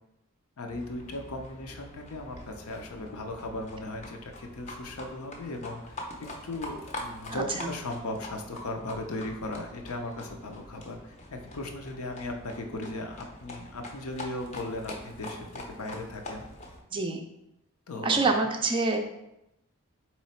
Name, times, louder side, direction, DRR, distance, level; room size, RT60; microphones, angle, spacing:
voice 1, 0.6-6.0 6.4-16.5 17.9-18.2, left 2 dB, 80° left, 4 dB, 0.6 m, -37 dB
Livestock farm animals working animals, 0.7-16.8, left 1 dB, 30° left, 0.6 m, -44 dB
voice 2, 7.3-7.7 16.9-17.2 18.0-19.0, right 3 dB, 20° right, 4 dB, 0.3 m, -26 dB
3.8 x 3.1 x 4.3 m, 0.86 s
head